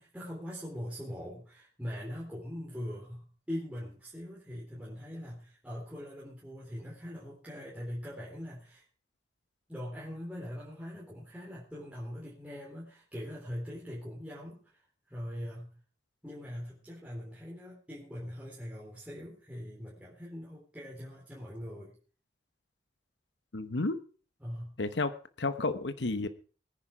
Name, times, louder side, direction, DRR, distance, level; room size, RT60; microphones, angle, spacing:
voice 1, 0.0-8.8 9.7-15.7 16.2-21.9 24.4-24.7, equal, 5° right, -7 dB, 4.0 m, -42 dB
voice 2, 23.5-24.0 24.8-26.3, left 3 dB, 75° left, 11 dB, 1.0 m, -32 dB
20.0 x 10.0 x 4.9 m, 0.39 s
head